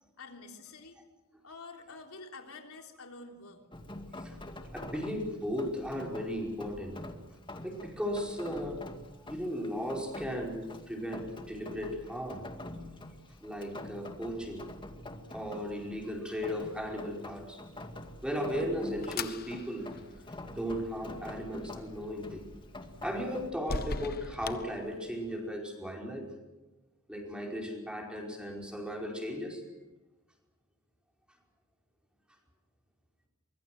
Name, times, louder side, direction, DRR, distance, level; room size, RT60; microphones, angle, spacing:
voice 1, 0.2-1.0 1.4-3.7, left 3 dB, 85° left, 3 dB, 3.5 m, -48 dB
Rain, 3.7-23.5, left 1 dB, 25° left, 2.1 m, -46 dB
voice 2, 4.6-7.0 7.6-8.9 9.3-12.5 13.4-14.7 15.3-17.6 18.2-19.9 20.5-22.5 23.0-26.3 27.1-29.6, equal, 5° right, 0 dB, 5.0 m, -36 dB
sound 1, 18.1-25.5, left 4 dB, 45° left, 1.1 m, -43 dB
24.0 x 22.5 x 7.8 m, 1.1 s
head